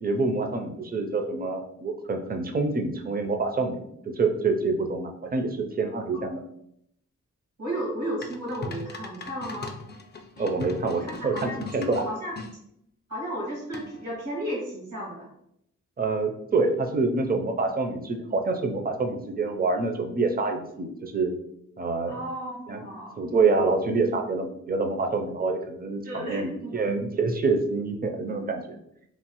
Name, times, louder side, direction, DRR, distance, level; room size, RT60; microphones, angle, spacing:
voice 1, 0.0-3.8 4.2-6.4 10.4-12.1 16.0-21.3 21.8-22.2 22.7-22.8 23.2-28.8, right 3 dB, 30° right, 5 dB, 0.4 m, -26 dB
voice 2, 7.6-9.7 10.3-10.5 11.0-11.6 12.0-12.3 13.1-15.3 22.1-23.2 26.0-26.8, equal, 80° right, -5 dB, 1.4 m, -33 dB
sound 1, 8.2-12.5 13.7-14.1, left 3 dB, 35° left, 0.4 m, -39 dB
3.0 x 2.0 x 2.9 m, 0.75 s
cardioid pair, 75°, 31 cm